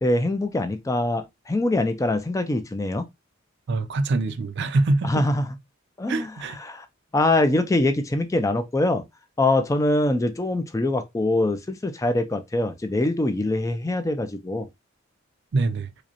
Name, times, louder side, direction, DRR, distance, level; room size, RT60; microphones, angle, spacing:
voice 1, 0.0-3.1 5.0-5.5 6.0-6.9 7.1-9.1 9.4-14.7, left 2 dB, 15° left, 0.4 m, -23 dB
voice 2, 3.7-5.2 6.1-6.6 15.5-15.9, right 2 dB, 55° right, 0.4 m, -24 dB
4.9 x 2.1 x 2.8 m
head